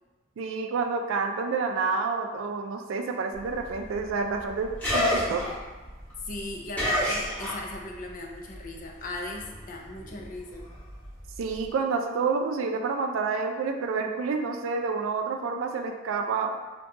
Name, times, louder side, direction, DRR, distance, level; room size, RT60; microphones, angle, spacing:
voice 1, 0.4-5.4 11.4-16.5, right 4 dB, 90° right, 5 dB, 0.3 m, -29 dB
sound 1, 3.3-8.0 8.3-11.7, left 1 dB, 10° left, 0.9 m, -31 dB
voice 2, 6.2-10.7, left 2 dB, 45° left, 1 dB, 0.4 m, -38 dB
2.6 x 2.2 x 3.6 m, 1.3 s
head